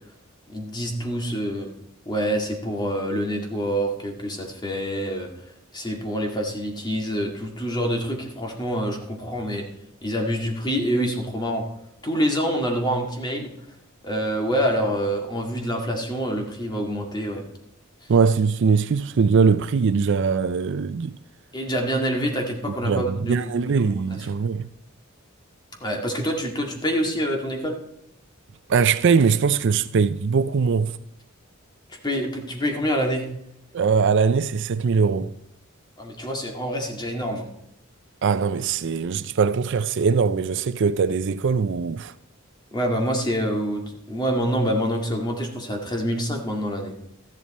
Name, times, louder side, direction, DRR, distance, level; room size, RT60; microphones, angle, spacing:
voice 1, 0.5-1.7 2.1-5.3 5.7-9.7 10.0-11.6 12.0-13.5 14.0-17.4 21.5-24.0 25.8-27.8 32.0-33.3 36.0-37.5 42.7-46.9, equal, 20° left, 2.0 m, -26 dB
voice 2, 18.1-21.2 22.8-24.7 28.7-31.0 33.7-35.3 38.2-42.1, right 5 dB, 60° right, 0.4 m, -21 dB
13.5 x 10.5 x 4.2 m
head